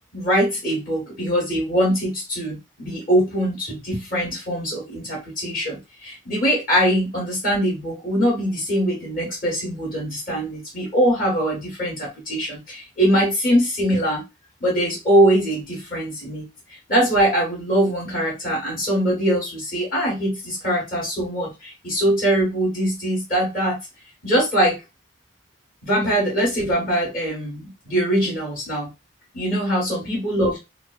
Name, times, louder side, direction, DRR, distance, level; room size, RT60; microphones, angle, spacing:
voice 1, 0.1-14.2 14.6-16.5 16.9-23.8 24.2-24.8 25.8-28.9 29.3-30.6, equal, 45° left, -3 dB, 1.1 m, -22 dB
3.1 x 2.2 x 2.3 m, 0.25 s
head